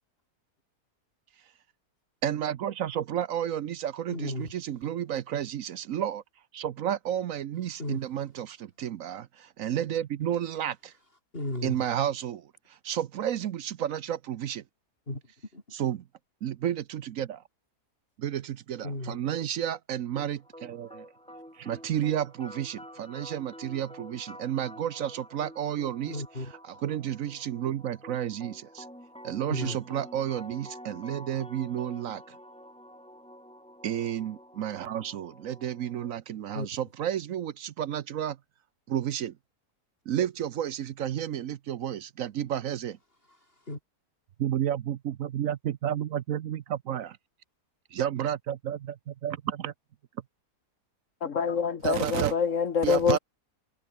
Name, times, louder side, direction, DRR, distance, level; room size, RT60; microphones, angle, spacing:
voice 1, 2.2-6.2 6.5-10.9 11.6-12.5 12.8-14.6 15.7-16.0 16.4-17.4 18.2-21.1 21.6-26.2 26.8-28.9 29.2-32.2 33.8-38.4 38.9-39.3 40.1-43.0 44.4-47.2 47.9-49.7 51.8-52.3 52.8-53.2, right 10 dB, 65° right, 1.0 m, -31 dB
voice 2, 4.1-4.5 7.8-8.0 11.3-11.9 15.1-15.6 18.8-19.2 26.1-26.5 29.5-29.8 36.5-36.7 43.3-43.4 43.6-43.8, left 1 dB, 35° left, 6.1 m, -35 dB
sound 1, 20.2-36.2, equal, 5° left, 7.1 m, -48 dB
voice 3, 51.2-53.2, left 6 dB, 55° left, 1.5 m, -26 dB
omnidirectional pair, 1.7 m